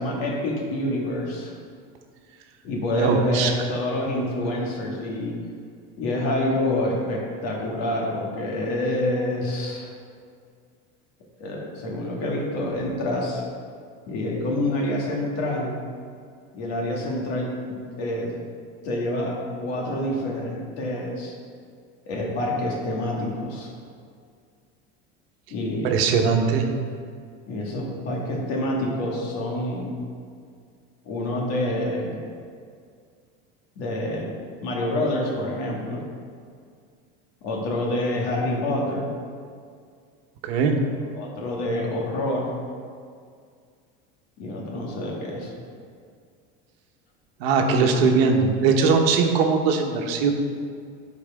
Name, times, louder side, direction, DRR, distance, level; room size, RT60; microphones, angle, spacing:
voice 1, 0.0-1.5 2.6-5.4 6.0-9.9 11.4-13.4 14.1-15.7 16.5-18.3 18.8-21.3 22.0-23.7 25.5-25.9 27.5-29.9 31.0-32.2 33.8-34.3 34.6-36.0 37.4-39.1 41.1-42.5 44.4-45.5, left 1 dB, 60° left, -2 dB, 1.9 m, -27 dB
voice 2, 2.9-3.5 25.8-26.6 40.4-40.8 47.4-50.3, right 5 dB, 80° right, 3 dB, 1.1 m, -20 dB
11.5 x 4.8 x 3.6 m, 2.2 s
supercardioid pair, 140°, 29 cm